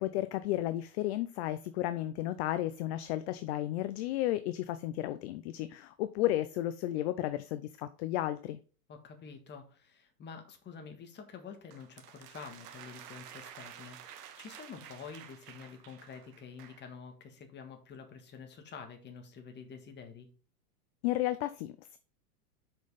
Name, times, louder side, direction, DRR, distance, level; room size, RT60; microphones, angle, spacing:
voice 1, 0.0-8.6 21.0-22.0, left 14 dB, 45° left, 0.5 m, -33 dB
voice 2, 8.9-20.3, left 6 dB, 20° left, 1.7 m, -48 dB
sound 1, 11.7-16.9, right 9 dB, 70° right, 1.4 m, -51 dB
6.1 x 5.4 x 5.5 m
hypercardioid pair, 125°, 48 cm